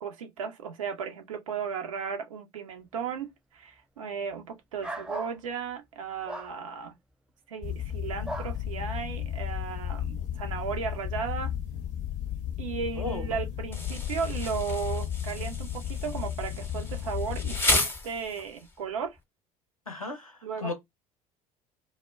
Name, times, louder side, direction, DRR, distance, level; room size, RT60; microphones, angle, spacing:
voice 1, 0.0-6.9 7.5-11.5 12.6-19.2 20.4-20.7, right 6 dB, 70° right, 0.6 m, -35 dB
sound 1, 4.8-5.4 6.3-6.5 8.2-8.5, right 1 dB, 5° right, 0.4 m, -36 dB
sound 2, 7.6-17.6, left 10 dB, 45° left, 0.6 m, -34 dB
Insect, 13.7-18.7, left 2 dB, 15° left, 0.8 m, -33 dB
voice 2, 19.9-20.7, left 3 dB, 90° left, 0.6 m, -35 dB
2.1 x 2.1 x 3.3 m
figure-of-eight pair, 60°, 18 cm